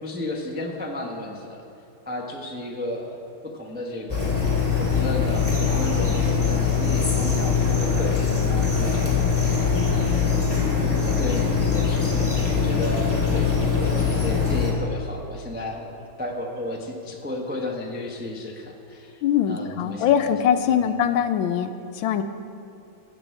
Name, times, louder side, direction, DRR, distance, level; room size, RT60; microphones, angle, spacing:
voice 1, 0.0-1.6 2.1-4.3 4.8-10.2 10.8-19.2 19.5-20.3 20.8-20.9, left 1 dB, 10° right, -1 dB, 0.4 m, -33 dB
sound 1, 4.1-14.7, left 6 dB, 5° left, 2.1 m, -22 dB
voice 2, 19.2-22.2, left 9 dB, 75° left, 9 dB, 1.3 m, -22 dB
11.0 x 7.0 x 8.3 m, 2.7 s
omnidirectional pair, 2.3 m